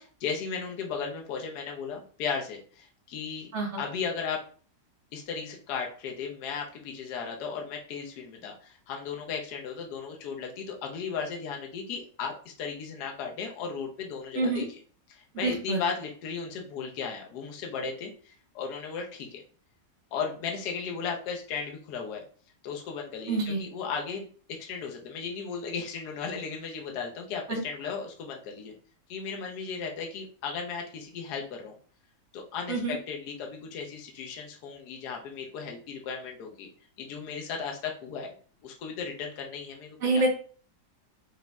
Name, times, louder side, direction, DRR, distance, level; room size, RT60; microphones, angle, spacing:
voice 1, 0.2-3.5 3.8-4.4 5.1-12.3 12.6-14.8 15.1-19.4 20.1-22.2 22.6-28.7 29.1-31.7 32.3-36.7 37.0-38.3 38.6-40.3, left 6 dB, 70° left, 1 dB, 1.2 m, -36 dB
voice 2, 14.4-14.7 15.4-15.8 23.3-23.6 27.5-27.6 32.7-32.9 40.0-40.3, right 3 dB, 50° right, 0 dB, 1.1 m, -27 dB
5.0 x 2.6 x 2.2 m, 0.41 s
omnidirectional pair, 1.9 m